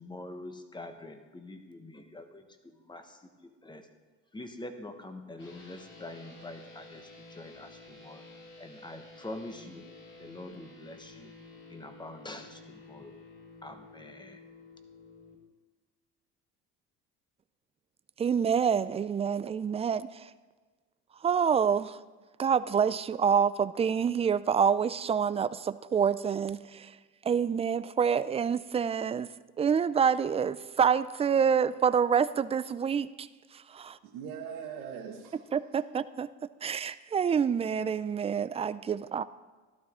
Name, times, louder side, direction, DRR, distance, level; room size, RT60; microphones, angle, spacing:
voice 1, 0.0-3.9 4.3-8.2 8.6-11.3 11.7-13.2 13.6-14.4, left 2 dB, 15° left, 7 dB, 1.2 m, -45 dB
sound 1, 5.4-15.3, left 2 dB, 35° left, 3.3 m, -52 dB
voice 2, 18.2-20.3 21.2-22.0 22.4-26.9 27.2-29.3 29.6-33.3 33.7-34.0 35.5-36.3 36.6-39.2, right 7 dB, 20° right, 15 dB, 0.3 m, -27 dB
voice 3, 33.8-35.8, right 7 dB, 85° right, -1 dB, 1.7 m, -42 dB
14.0 x 12.0 x 3.7 m, 1.4 s
cardioid pair, 100°, 32 cm